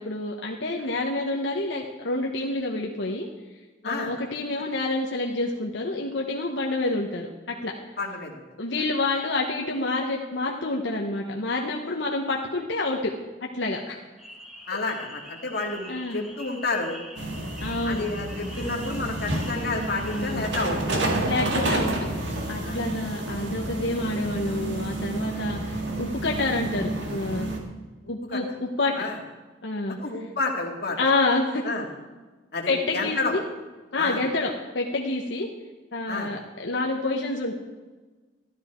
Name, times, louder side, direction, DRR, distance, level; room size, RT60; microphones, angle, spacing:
voice 1, 0.0-3.3 3.8-7.7 8.6-13.1 13.4-14.0 15.9-16.3 17.6-18.0 20.0-20.5 21.2-27.5 28.1-28.9 29.6-30.0 31.0-31.6 32.7-33.4 33.9-35.5 35.9-37.5, left 2 dB, 85° left, 0 dB, 1.2 m, -28 dB
voice 2, 8.0-8.4 14.7-17.0 17.9-21.0 21.6-21.8 22.6-22.8 28.3-28.4 29.0-29.2 30.0-31.0 31.6-31.9 32.5-33.3 34.0-34.2 36.1-36.3, left 3 dB, 60° left, 0 dB, 2.1 m, -30 dB
sound 1, 14.2-20.5, equal, 5° right, 1.6 m, -45 dB
sound 2, 17.2-27.6, right 2 dB, 80° right, 2.0 m, -30 dB
14.0 x 12.0 x 4.5 m, 1.3 s
head